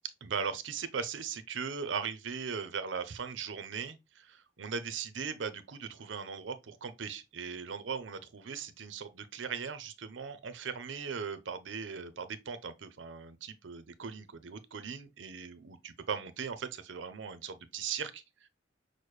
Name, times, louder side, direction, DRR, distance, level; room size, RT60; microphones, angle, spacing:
voice 1, 0.2-18.5, right 6 dB, 90° right, 0.6 m, -39 dB
6.2 x 2.1 x 3.1 m
head